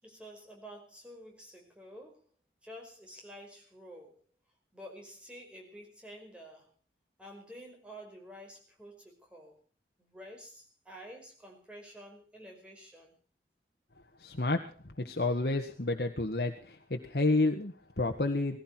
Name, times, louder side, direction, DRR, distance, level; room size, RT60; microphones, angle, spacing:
voice 1, 0.0-2.3 2.6-4.2 4.7-6.7 7.2-9.6 10.0-13.1, equal, 5° right, 1 dB, 5.3 m, -50 dB
voice 2, 14.2-14.6 15.0-18.6, left 2 dB, 65° left, 4 dB, 1.6 m, -30 dB
19.5 x 16.5 x 4.4 m, 0.38 s
head